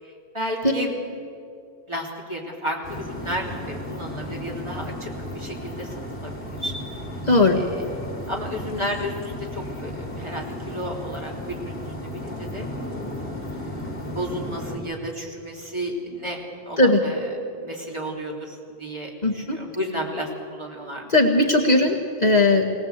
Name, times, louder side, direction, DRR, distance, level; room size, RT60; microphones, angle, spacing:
voice 1, 0.0-0.9 1.9-5.1 5.3-5.9 6.2-6.7 7.5-7.8 8.3-12.6 13.3-17.3 17.6-21.1 21.8-21.9, equal, 25° right, -1 dB, 3.2 m, -33 dB
sound 1, 2.8-14.8, left 1 dB, 65° left, 3.2 m, -34 dB
voice 2, 7.3-7.6 16.8-17.0 19.2-19.6 21.1-22.6, left 2 dB, 40° left, 1 dB, 1.7 m, -18 dB
21.5 x 18.0 x 8.1 m, 2.4 s
omnidirectional pair, 1.1 m